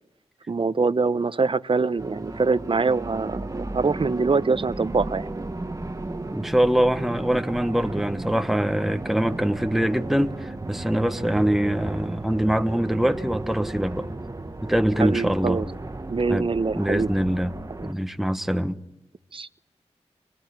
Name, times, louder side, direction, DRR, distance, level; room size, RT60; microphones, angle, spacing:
voice 1, 0.5-5.3 15.0-15.6 16.1-17.1 19.3-19.5, right 4 dB, 45° right, 0.8 m, -24 dB
sound 1, 2.0-17.9, right 2 dB, 30° right, 1.1 m, -34 dB
voice 2, 6.3-14.1 14.6-15.7 16.3-16.5 16.7-17.5 17.8-18.8, right 1 dB, ahead, 1.1 m, -23 dB
25.5 x 19.5 x 9.7 m
cardioid pair, 55°, 12 cm